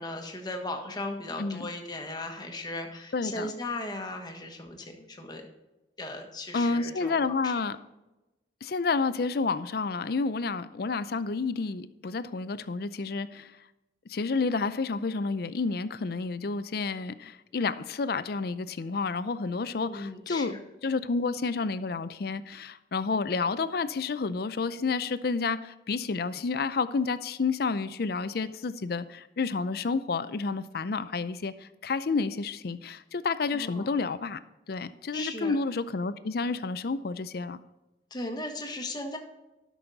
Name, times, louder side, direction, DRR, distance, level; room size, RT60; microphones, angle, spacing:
voice 1, 0.0-5.4 6.0-7.5 19.8-20.6 33.5-33.9 35.1-35.5 38.1-39.2, left 2 dB, 25° left, 3 dB, 1.4 m, -37 dB
voice 2, 3.1-3.5 6.5-7.8 8.6-13.5 14.1-20.5 20.8-34.4 34.7-37.6, left 4 dB, 60° left, 14 dB, 0.5 m, -30 dB
12.5 x 6.2 x 4.0 m, 1.0 s
head